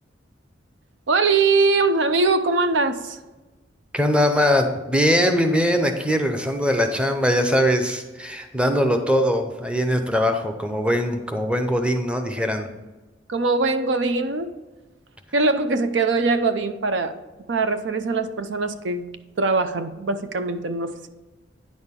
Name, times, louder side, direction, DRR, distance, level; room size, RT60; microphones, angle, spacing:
voice 1, 1.1-3.2 13.3-14.5 15.3-17.1 17.5-21.1, right 3 dB, 75° right, 10 dB, 0.6 m, -22 dB
voice 2, 3.9-12.7, equal, 5° right, 6 dB, 0.7 m, -21 dB
9.6 x 6.3 x 3.7 m, 1.2 s
head